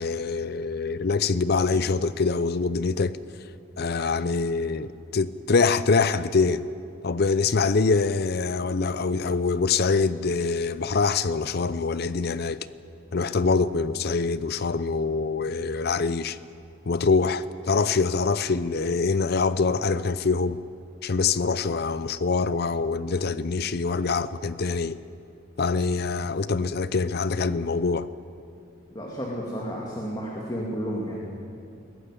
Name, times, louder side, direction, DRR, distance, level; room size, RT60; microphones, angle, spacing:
voice 1, 0.0-3.2 3.8-6.6 7.0-12.7 13.1-16.4 16.9-20.6 21.0-25.0 25.6-28.1, left 4 dB, 50° left, 0.6 m, -24 dB
voice 2, 28.9-31.2, equal, 20° left, 2.5 m, -32 dB
21.5 x 15.0 x 9.9 m
head